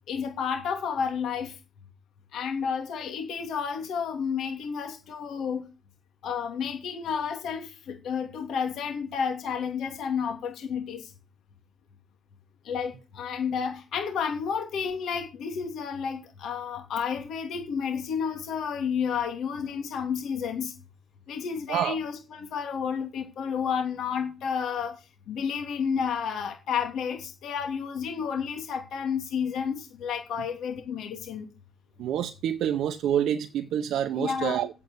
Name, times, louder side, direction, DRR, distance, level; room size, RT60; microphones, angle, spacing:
voice 1, 0.1-1.6 2.3-5.7 6.2-11.1 12.6-20.7 21.3-31.5 34.2-34.7, left 7 dB, 65° left, 2.7 m, -31 dB
voice 2, 32.0-34.7, right 10 dB, 65° right, 0.8 m, -27 dB
9.6 x 8.5 x 8.2 m
supercardioid pair, 70°, 0 cm